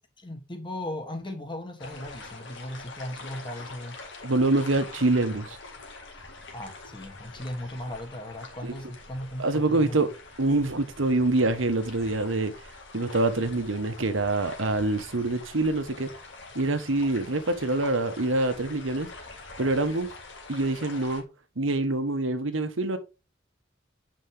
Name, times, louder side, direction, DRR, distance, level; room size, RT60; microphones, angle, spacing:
voice 1, 0.2-4.0 6.5-10.0, left 1 dB, 25° left, 1.6 m, -37 dB
sound 1, 1.8-21.2, left 3 dB, 70° left, 1.9 m, -45 dB
voice 2, 4.2-5.6 8.6-8.7 9.4-10.1 10.4-12.5 12.9-16.1 16.5-19.1 19.6-20.1 20.5-21.2 21.6-23.0, right 2 dB, 90° right, 1.3 m, -25 dB
7.8 x 5.3 x 3.4 m
head